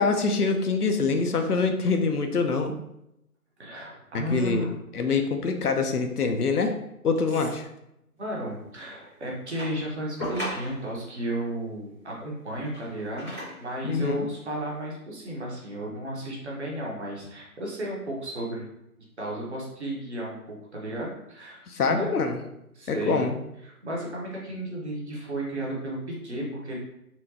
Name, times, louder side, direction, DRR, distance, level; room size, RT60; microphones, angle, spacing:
voice 1, 0.0-2.7 4.1-4.6 4.9-6.8 7.0-7.7 13.8-14.3 21.7-22.4 22.9-23.4, left 4 dB, 75° left, 6 dB, 0.6 m, -25 dB
voice 2, 3.6-4.7 8.2-18.6 19.2-22.1 22.7-23.2 23.6-26.8, right 1 dB, 45° right, -3 dB, 1.1 m, -33 dB
sound 1, 9.6-11.0 12.5-13.7 14.6-14.7, equal, 5° right, 0.8 m, -36 dB
4.3 x 2.3 x 2.7 m, 0.84 s
figure-of-eight pair, 150°, 46 cm